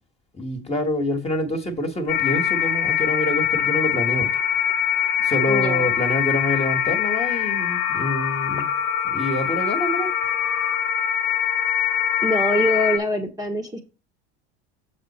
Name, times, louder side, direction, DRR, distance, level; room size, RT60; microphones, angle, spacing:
voice 1, 0.3-4.3 5.2-8.7 9.0-10.1, left 1 dB, 20° left, 1.7 m, -26 dB
sound 1, 2.1-13.0, left 9 dB, 65° left, 1.2 m, -23 dB
voice 2, 5.5-5.9 12.2-13.8, equal, 10° right, 1.3 m, -24 dB
6.9 x 5.2 x 4.3 m
supercardioid pair, 105°, 33 cm